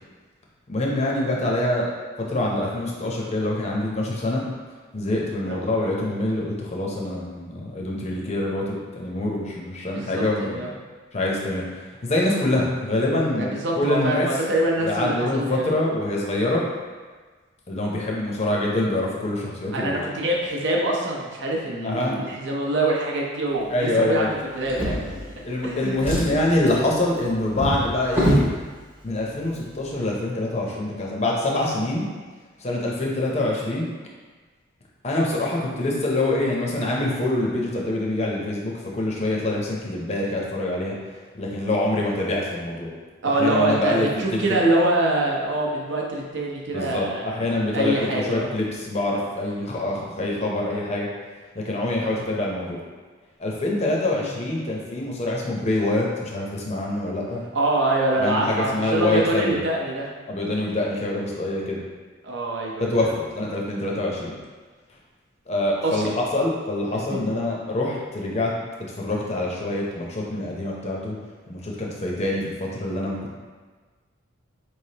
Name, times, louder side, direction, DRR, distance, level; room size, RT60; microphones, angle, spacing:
voice 1, 0.7-1.9 2.3-4.4 4.9-10.7 11.1-11.7 12.0-14.3 14.8-16.6 17.7-20.0 21.8-22.1 23.7-24.3 25.4-28.4 29.0-32.1 32.6-33.9 35.0-40.9 41.3-42.9 43.3-44.1 46.7-51.1 51.5-52.8 53.4-57.4 58.2-59.6 60.3-61.8 62.8-64.4 65.5-68.5 69.0-71.2 71.5-73.4, left 1 dB, 30° left, -3 dB, 0.6 m, -25 dB
voice 2, 9.8-10.7 13.4-15.7 19.7-25.0 25.6-26.2 43.2-47.3 47.7-48.5 54.1-54.3 57.5-60.1 62.2-63.1 65.8-66.1 67.1-67.2, right 1 dB, 60° right, -2 dB, 0.7 m, -25 dB
Drawer open or close, 24.6-25.6 25.9-28.5 29.4-29.6 29.9-30.0, equal, 10° right, 0.7 m, -25 dB
4.5 x 3.2 x 2.8 m, 1.4 s
head